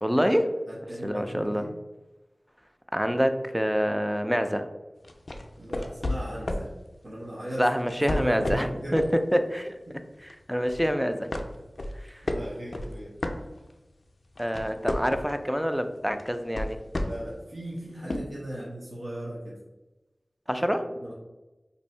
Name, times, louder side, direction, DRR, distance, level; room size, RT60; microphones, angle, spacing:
voice 1, 0.0-0.5 1.0-1.7 2.9-4.7 7.6-9.0 9.3-9.8 10.5-11.3 14.4-16.8 20.5-20.9, equal, 5° right, 8 dB, 0.3 m, -26 dB
voice 2, 0.7-1.7 5.6-6.7 7.0-7.7 8.1-9.0 9.9-10.0 12.2-13.2 17.0-19.6 20.5-20.6 21.0-21.1, right 1 dB, 75° right, -7 dB, 0.8 m, -37 dB
sound 1, 5.0-6.7 7.8-9.2 9.6-9.8 10.3-10.9 11.3-13.9 14.2-15.4 16.2-17.4 18.1-18.2, left 1 dB, 65° left, 0.4 m, -32 dB
2.7 x 2.6 x 4.2 m, 1.1 s
wide cardioid pair, 55°, 0 cm